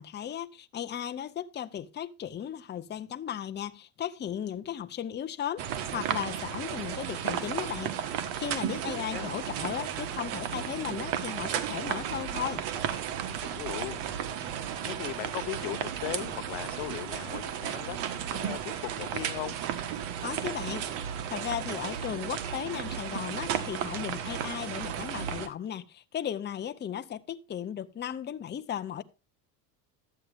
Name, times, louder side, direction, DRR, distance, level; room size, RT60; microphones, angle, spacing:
voice 1, 0.0-5.6 5.9-8.0 8.4-12.7 20.2-20.9 21.3-29.0, left 9 dB, 20° left, 0.6 m, -36 dB
sound 1, 5.6-25.5, right 9 dB, 70° right, 1.5 m, -34 dB
voice 2, 13.4-14.0 14.8-18.0 18.3-19.6, left 21 dB, 65° left, 0.7 m, -38 dB
12.0 x 8.5 x 3.4 m
supercardioid pair, 100°, 50 cm